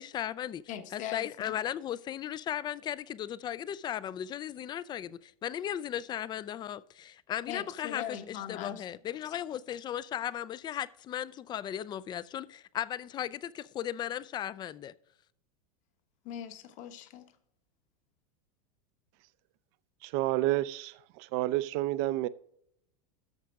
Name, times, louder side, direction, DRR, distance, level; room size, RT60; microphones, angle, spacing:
voice 1, 0.0-0.6 0.9-14.9, left 10 dB, 25° left, 0.4 m, -36 dB
voice 2, 0.7-1.6 7.5-8.8 16.2-17.3, left 10 dB, 45° left, 1.1 m, -40 dB
voice 3, 20.0-22.3, right 16 dB, 55° right, 0.5 m, -30 dB
13.5 x 5.1 x 3.6 m
hypercardioid pair, 115°, 18 cm